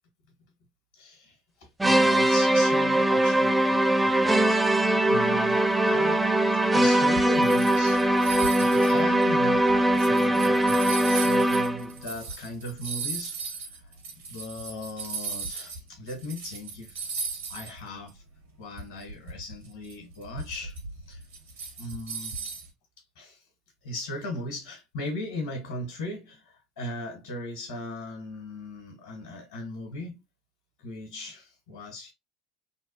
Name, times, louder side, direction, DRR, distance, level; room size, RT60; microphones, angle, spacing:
voice 1, 0.9-4.7 5.1-6.3 6.7-8.1 8.5-13.9 14.3-17.1 17.5-18.2 18.6-20.8 21.1-21.2 21.8-22.5 23.1-23.4 23.8-30.2 30.8-32.1, left 1 dB, 75° left, 1.4 m, -38 dB
sound 1, 1.8-11.9, right 1 dB, 10° right, 0.4 m, -21 dB
sound 2, 7.1-15.8 16.1-17.8 18.1-18.2 18.8-22.7, right 4 dB, 85° right, 1.5 m, -37 dB
3.5 x 2.3 x 2.9 m
hypercardioid pair, 70°, 0 cm